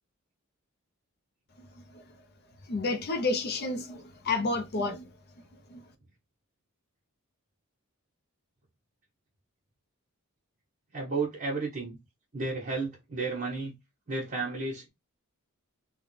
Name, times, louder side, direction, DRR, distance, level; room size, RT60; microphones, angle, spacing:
voice 1, 2.7-5.1 5.7-5.8, left 3 dB, 45° left, 0.5 m, -30 dB
voice 2, 10.9-12.0 12.3-13.7 14.1-14.9, right 3 dB, 35° right, 1.2 m, -32 dB
3.5 x 2.2 x 3.1 m
head